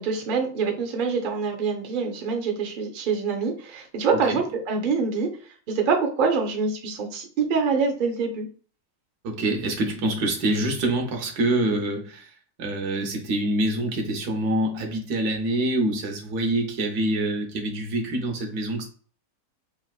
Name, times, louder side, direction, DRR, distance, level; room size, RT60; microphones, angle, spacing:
voice 1, 0.0-5.3 5.7-8.5, right 5 dB, 50° right, 0.6 m, -25 dB
voice 2, 9.2-12.3 12.6-18.9, right 1 dB, 80° right, 1.2 m, -26 dB
3.3 x 2.5 x 2.3 m
omnidirectional pair, 1.6 m